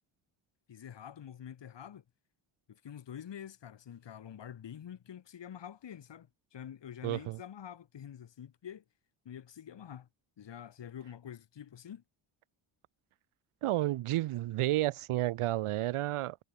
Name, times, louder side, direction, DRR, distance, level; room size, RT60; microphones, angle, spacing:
voice 1, 0.7-2.0 2.7-8.8 9.2-10.1 10.4-12.0, left 9 dB, 60° left, 3.4 m, -47 dB
voice 2, 7.0-7.4 13.6-16.4, right 15 dB, 85° right, 0.9 m, -31 dB
wide cardioid pair, 135°, 50 cm